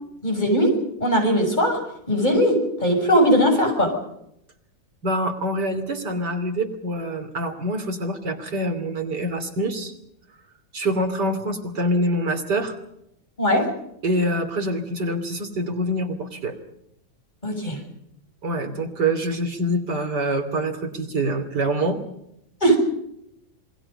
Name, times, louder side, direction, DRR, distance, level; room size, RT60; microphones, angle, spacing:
voice 1, 0.2-1.8 2.1-3.9 13.4-13.7 17.4-17.8 22.6-22.8, equal, 25° left, 2 dB, 6.9 m, -19 dB
voice 2, 5.0-9.9 10.7-12.7 14.0-16.6 18.4-22.0, right 1 dB, 70° right, 6 dB, 3.5 m, -25 dB
27.5 x 21.5 x 5.5 m, 0.78 s
omnidirectional pair, 1.9 m